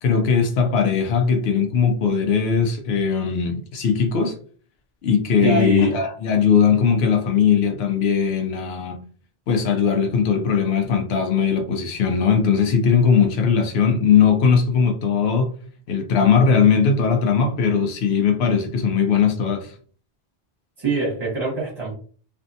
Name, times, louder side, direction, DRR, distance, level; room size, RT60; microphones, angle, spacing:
voice 1, 0.0-4.4 5.0-9.0 9.5-15.5 15.9-19.7, left 6 dB, 85° left, 0.8 m, -19 dB
voice 2, 5.4-5.9 20.8-21.9, right 3 dB, 30° right, 1.0 m, -23 dB
2.5 x 2.2 x 2.6 m
omnidirectional pair, 1.0 m